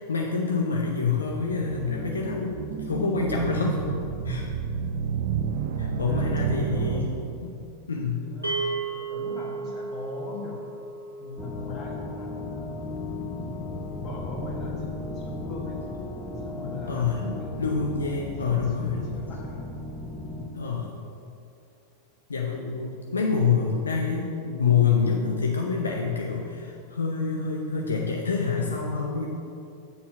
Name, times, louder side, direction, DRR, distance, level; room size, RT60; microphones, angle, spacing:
voice 1, 0.1-3.8 4.2-4.5 5.8-7.2 7.4-7.5 7.9-8.3 16.9-17.2 17.6-19.2 20.5-21.0 22.3-29.3, left 5 dB, 75° left, 0 dB, 0.6 m, -27 dB
sound 1, 1.3-7.6, right 6 dB, 55° right, 0.6 m, -30 dB
voice 2, 5.9-7.1 8.2-10.7 11.2-12.8 13.5-15.8 16.4-17.5 18.5-19.7, left 3 dB, 35° left, -2 dB, 1.5 m, -39 dB
sound 2, 8.4-18.7, right 4 dB, 80° right, 1.0 m, -38 dB
sound 3, 11.4-20.5, left 2 dB, 10° left, 0.7 m, -36 dB
7.3 x 4.3 x 5.5 m, 2.5 s
figure-of-eight pair, 90°, 0 cm